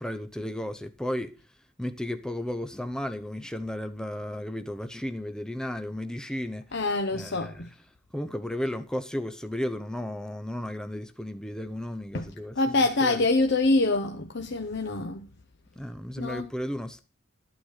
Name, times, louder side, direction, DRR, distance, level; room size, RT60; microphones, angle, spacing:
voice 1, 0.0-6.8 7.1-7.7 8.1-13.2 15.8-17.0, left 1 dB, 5° left, 0.7 m, -34 dB
voice 2, 6.7-7.7 12.1-12.3 12.5-15.3 16.2-16.5, left 2 dB, 60° left, 1.0 m, -25 dB
13.0 x 9.1 x 4.9 m
head